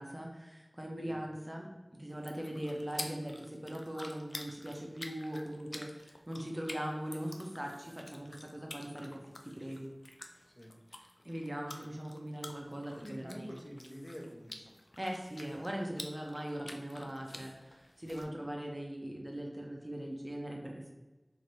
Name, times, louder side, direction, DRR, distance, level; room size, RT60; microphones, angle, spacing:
voice 1, 0.0-1.7 1.9-9.9 10.9-13.6 15.0-20.9, right 1 dB, 25° right, 0 dB, 0.6 m, -40 dB
sound 1, 2.1-18.2, left 1 dB, 60° left, 0.4 m, -49 dB
voice 2, 10.4-10.7 13.0-14.8, equal, 20° left, -1 dB, 0.7 m, -47 dB
3.2 x 2.6 x 4.1 m, 1.1 s
wide cardioid pair, 45°, 0 cm